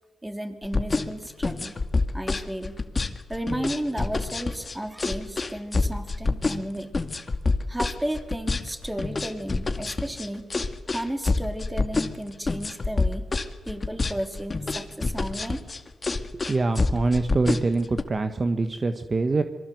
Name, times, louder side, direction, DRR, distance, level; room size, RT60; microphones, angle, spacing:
voice 1, 0.2-1.7 2.1-2.8 3.3-6.9 7.7-10.4 10.9-13.2 13.7-15.6, right 1 dB, 10° right, 6 dB, 3.9 m, -33 dB
sound 1, 0.6-18.0, left 3 dB, 35° left, 2.1 m, -27 dB
voice 2, 16.3-19.4, right 3 dB, 35° right, 8 dB, 1.6 m, -24 dB
26.5 x 23.5 x 8.1 m, 1.2 s
cardioid pair, 65°, 0 cm